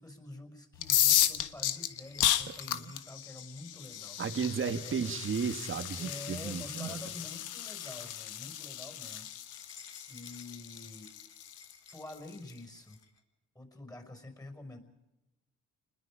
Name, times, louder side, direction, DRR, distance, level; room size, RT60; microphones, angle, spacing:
voice 1, 0.0-4.2 4.8-5.1 6.0-9.5 10.1-11.1 11.9-13.0 13.5-14.8, left 2 dB, 10° left, 6 dB, 5.7 m, -47 dB
Opening soda can, 0.8-12.5, left 12 dB, 85° left, 1.4 m, -33 dB
sound 1, 1.6-13.2, left 4 dB, 55° left, 4.0 m, -57 dB
voice 2, 4.2-7.1, right 6 dB, 40° right, 8 dB, 1.8 m, -34 dB
29.5 x 21.0 x 5.1 m, 0.97 s
cardioid pair, 90°, 30 cm